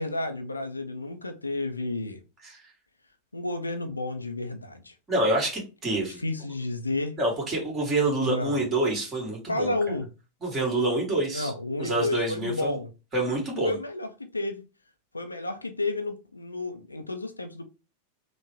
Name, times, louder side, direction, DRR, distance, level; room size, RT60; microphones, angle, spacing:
voice 1, 0.0-2.2 3.3-4.9 6.2-7.2 8.2-8.6 9.5-10.1 11.3-12.9 13.6-14.6 15.1-17.6, left 2 dB, 80° left, 0.4 m, -31 dB
voice 2, 5.1-6.2 7.2-9.8 10.4-11.5 11.8-12.8 13.1-13.8, right 2 dB, 20° right, 1.7 m, -27 dB
3.5 x 2.1 x 3.1 m
figure-of-eight pair, 90°, 0 cm